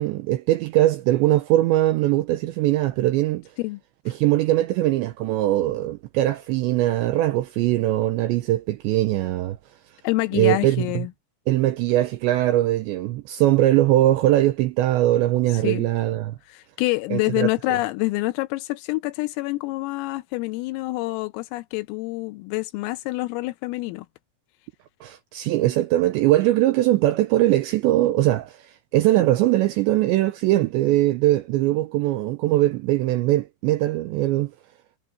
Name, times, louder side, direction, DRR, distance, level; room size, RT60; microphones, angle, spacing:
voice 1, 0.0-3.4 4.1-9.6 10.3-11.1 11.5-16.4 17.1-17.5 25.0-34.5, right 15 dB, 90° right, 2.6 m, -21 dB
voice 2, 10.0-11.1 15.6-15.9 16.5-24.1, left 21 dB, 85° left, 3.3 m, -27 dB
omnidirectional pair, 6.0 m